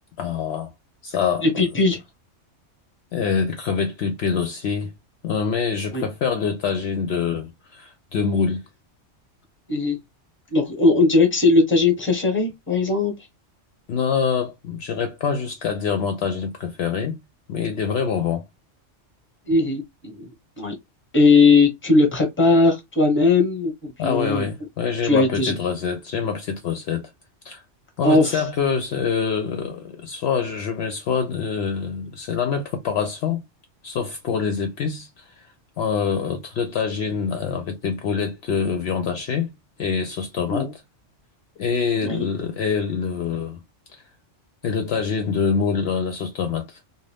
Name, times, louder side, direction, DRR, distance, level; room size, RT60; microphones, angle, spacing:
voice 1, 0.2-0.7 1.0-1.6 3.1-4.9 5.2-8.6 13.9-17.2 17.5-18.4 24.0-27.1 27.4-27.6 28.0-33.4 33.8-35.2 35.8-39.5 39.8-40.7 41.6-43.6 44.6-46.8, left 6 dB, 65° left, 0.7 m, -25 dB
voice 2, 1.4-2.0 5.9-6.0 9.7-10.0 10.5-13.1 19.5-20.3 20.6-20.7 21.1-24.5 25.0-25.6 28.0-28.4 40.5-40.7 42.0-42.2, left 3 dB, 10° left, 0.9 m, -19 dB
2.5 x 2.2 x 3.3 m
omnidirectional pair, 1.3 m